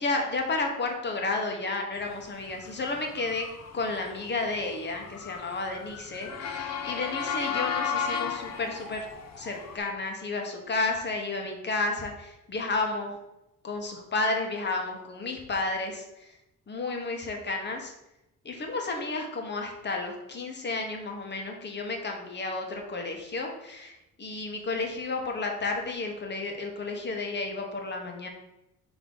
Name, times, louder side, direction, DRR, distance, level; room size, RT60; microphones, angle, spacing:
voice 1, 0.0-3.5 3.7-9.1 9.4-13.2 13.6-16.0 16.7-17.9 18.4-28.3, left 3 dB, 30° left, 3 dB, 1.1 m, -32 dB
Motor vehicle (road) / Siren, 2.5-9.8, left 6 dB, 50° left, 0.7 m, -34 dB
6.2 x 3.0 x 5.3 m, 0.88 s
cardioid pair, 140°, 34 cm